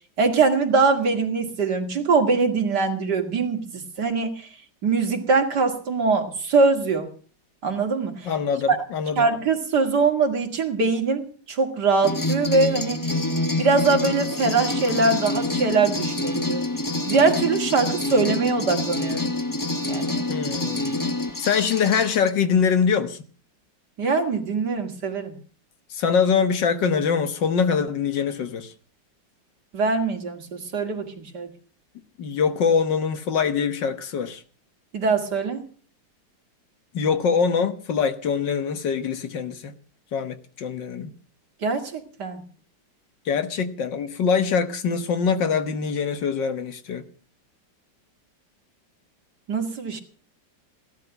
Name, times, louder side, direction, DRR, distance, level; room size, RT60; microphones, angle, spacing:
voice 1, 0.2-4.5 4.8-7.1 7.6-8.3 8.7-8.8 9.2-13.1 13.6-16.7 17.1-19.3 19.9-20.2 24.0-25.3 29.7-31.5 34.9-35.6 41.6-42.4 49.5-50.0, right 4 dB, 60° right, 2.7 m, -22 dB
voice 2, 8.3-9.3 20.3-21.1 21.4-23.2 25.9-28.7 32.2-34.4 36.9-39.7 40.1-41.1 43.3-47.1, left 6 dB, 70° left, 1.9 m, -23 dB
sound 1, 12.0-22.3, left 2 dB, 20° left, 0.5 m, -27 dB
17.0 x 12.0 x 5.8 m
omnidirectional pair, 2.0 m